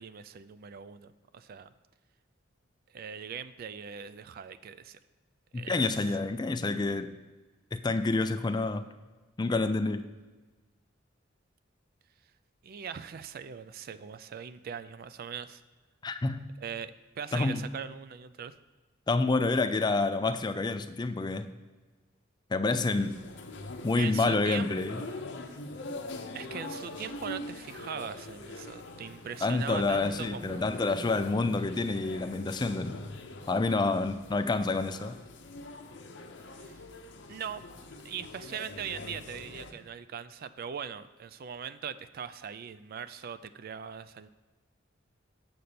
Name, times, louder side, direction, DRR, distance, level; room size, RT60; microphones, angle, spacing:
voice 1, 0.0-1.7 2.9-5.0 5.5-5.8 12.6-15.6 16.6-18.5 23.9-24.7 26.3-30.6 36.5-36.8 37.3-37.6 38.0-44.3, right 7 dB, 50° right, 13 dB, 0.3 m, -40 dB
voice 2, 5.5-7.1 7.7-8.8 9.4-10.1 16.0-16.5 17.3-17.6 19.1-21.5 22.5-23.2 23.8-25.0 29.4-33.0 33.5-35.2, left 3 dB, 20° left, 10 dB, 0.4 m, -28 dB
sound 1, 22.9-39.7, left 2 dB, 65° left, 0.8 m, -43 dB
7.7 x 4.2 x 6.8 m, 1.3 s
head